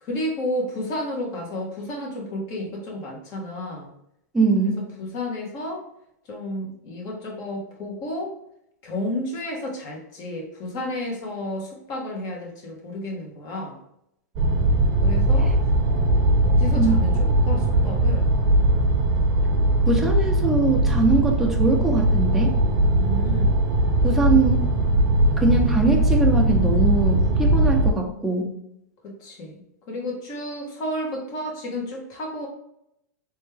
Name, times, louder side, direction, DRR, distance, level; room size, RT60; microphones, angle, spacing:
voice 1, 0.0-3.9 5.0-5.8 6.3-8.3 8.8-13.8 15.0-15.5 16.4-18.3 22.9-23.6 29.0-29.6 29.9-32.5, left 1 dB, 40° left, -1 dB, 1.5 m, -31 dB
voice 2, 4.3-4.8 16.8-17.0 19.9-22.6 24.0-24.7 25.4-28.5, right 3 dB, 5° right, 0 dB, 0.7 m, -22 dB
sound 1, 14.4-27.9, right 1 dB, 40° right, 0.8 m, -20 dB
3.5 x 3.2 x 3.3 m, 0.78 s
hypercardioid pair, 120°, 9 cm